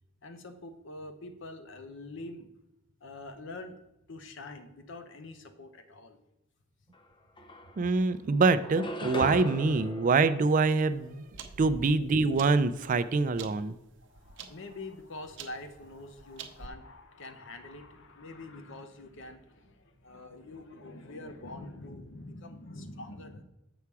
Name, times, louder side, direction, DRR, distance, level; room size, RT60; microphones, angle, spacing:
voice 1, 0.2-2.5 3.0-3.8 4.1-6.2 14.0-23.4, left 2 dB, 65° left, 8 dB, 0.8 m, -45 dB
sound 1, 6.9-7.0 7.4-8.1 8.6-11.2, equal, 25° left, 0.6 m, -40 dB
voice 2, 7.8-11.2 11.6-13.7, right 3 dB, 40° right, 14 dB, 0.4 m, -25 dB
sound 2, 10.7-16.7, right 5 dB, 65° right, 0.7 m, -48 dB
7.1 x 5.7 x 4.7 m, 0.94 s
head